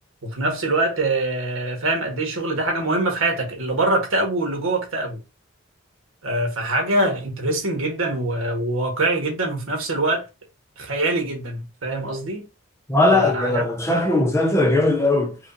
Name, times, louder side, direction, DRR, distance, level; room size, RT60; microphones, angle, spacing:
voice 1, 0.2-5.2 6.2-10.2 10.8-12.5 13.1-13.6, right 2 dB, 75° right, 1.4 m, -24 dB
voice 2, 12.9-15.4, left 2 dB, 15° left, 0.6 m, -19 dB
4.8 x 2.4 x 2.7 m
head